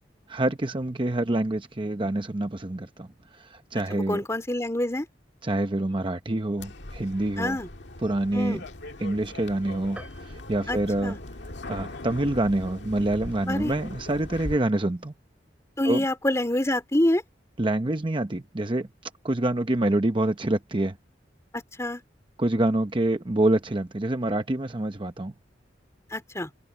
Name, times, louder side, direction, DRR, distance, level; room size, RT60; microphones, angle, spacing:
voice 1, 0.3-4.2 5.4-7.6 8.0-8.6 9.0-11.2 11.7-15.1 15.8-16.0 17.6-21.0 22.4-25.3, right 1 dB, 30° right, 0.8 m, -26 dB
voice 2, 3.9-5.1 7.4-7.7 8.3-8.6 10.7-11.2 13.5-13.7 15.8-17.2 21.5-22.0 26.1-26.5, left 1 dB, 15° left, 2.8 m, -26 dB
sound 1, 6.6-14.6, left 1 dB, 70° left, 2.0 m, -40 dB
sound 2, 10.0-11.7, right 1 dB, 10° right, 5.2 m, -48 dB
head